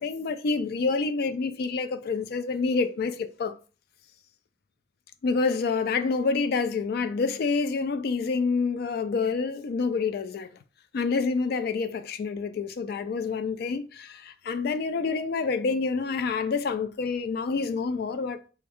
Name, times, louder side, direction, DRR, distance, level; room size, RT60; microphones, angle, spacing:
voice 1, 0.0-3.5 5.2-10.5 10.9-18.5, left 4 dB, 55° left, 0.3 m, -27 dB
3.3 x 2.3 x 3.5 m
head